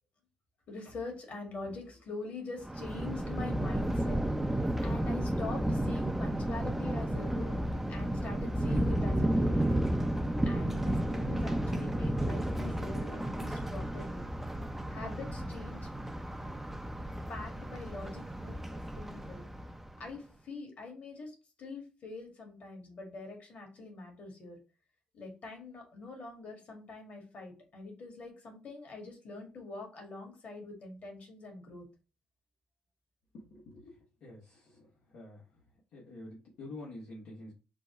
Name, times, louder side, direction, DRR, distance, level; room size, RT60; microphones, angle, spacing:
voice 1, 0.7-4.5 4.8-9.8 10.4-14.2 14.9-15.9 16.4-16.5 17.3-19.4 20.0-24.6 25.1-31.9, left 3 dB, 55° left, 1 dB, 1.9 m, -44 dB
Thunder, 2.6-20.0, right 1 dB, 10° right, 0.5 m, -32 dB
voice 2, 33.3-33.9 34.2-34.9 35.1-35.4 35.9-37.5, left 2 dB, 75° left, -5 dB, 1.1 m, -47 dB
4.0 x 2.2 x 4.5 m, 0.34 s
supercardioid pair, 65°, 3 cm